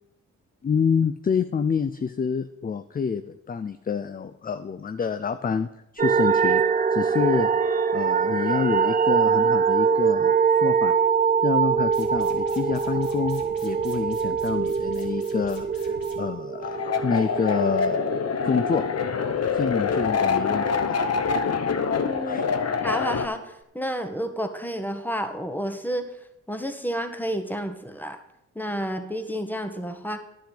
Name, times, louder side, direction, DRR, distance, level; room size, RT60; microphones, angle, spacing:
voice 1, 0.6-5.7 5.9-6.6 6.9-7.5 7.9-10.3 10.6-10.9 11.4-18.0 18.4-18.8 19.5-21.0 22.2-22.5, left 6 dB, 25° left, 11 dB, 0.5 m, -27 dB
sound 1, 6.0-20.9 21.2-22.6 23.1-23.2, right 6 dB, 25° right, 0.6 m, -24 dB
sound 2, 11.8-16.2, left 3 dB, 65° left, 2.2 m, -44 dB
sound 3, 16.6-23.3, left 6 dB, 45° left, 0.9 m, -25 dB
voice 2, 22.0-22.4 22.8-26.1 26.5-28.2 28.5-30.2, equal, 5° left, 7 dB, 1.4 m, -30 dB
10.0 x 7.6 x 5.1 m, 0.85 s
supercardioid pair, 45°, 37 cm